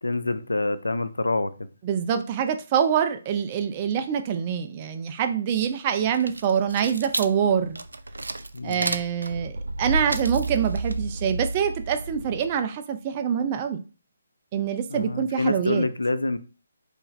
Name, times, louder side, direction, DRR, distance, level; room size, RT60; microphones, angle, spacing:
voice 1, 0.0-1.7 8.5-8.9 14.9-16.4, left 2 dB, 90° left, 0.5 m, -26 dB
voice 2, 1.8-7.8 8.6-13.8 14.5-15.9, right 8 dB, 30° right, 0.5 m, -25 dB
sound 1, 6.0-12.6, right 2 dB, 85° right, 0.4 m, -31 dB
4.7 x 2.6 x 3.2 m
figure-of-eight pair, 150°, 0 cm